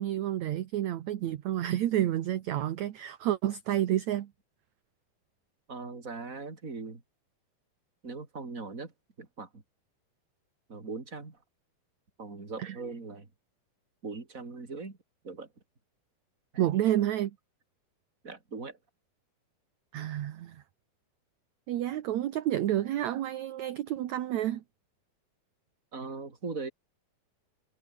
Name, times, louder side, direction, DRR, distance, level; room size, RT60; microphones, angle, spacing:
voice 1, 0.0-4.3 12.6-12.8 16.6-17.4 19.9-20.6 21.7-24.6, right 12 dB, 65° right, 2.1 m, -30 dB
voice 2, 5.7-7.0 8.0-8.9 9.2-9.6 10.7-11.4 12.2-13.3 14.0-15.0 15.2-15.5 18.2-18.8 25.9-26.7, right 4 dB, 20° right, 3.7 m, -40 dB
omnidirectional pair, 4.3 m